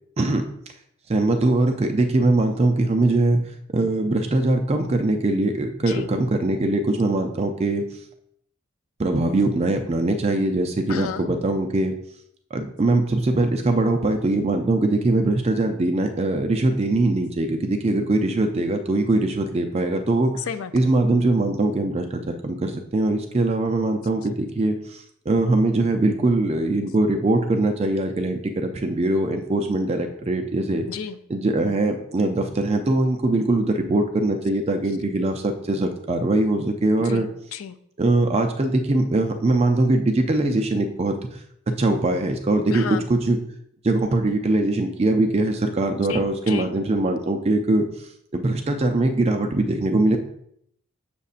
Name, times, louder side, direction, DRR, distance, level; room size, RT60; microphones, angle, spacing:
voice 1, 1.1-3.4 3.7-7.8 9.0-11.9 12.5-20.3 20.7-30.9 31.3-37.3 38.0-41.4 41.7-43.4 43.8-50.2, right 2 dB, 30° right, 5 dB, 0.4 m, -22 dB
voice 2, 10.9-11.3 20.3-20.9 30.9-31.2 37.0-37.8 42.7-43.1 46.1-46.7, left 7 dB, 70° left, 9 dB, 0.4 m, -32 dB
6.8 x 6.5 x 2.5 m, 0.71 s
head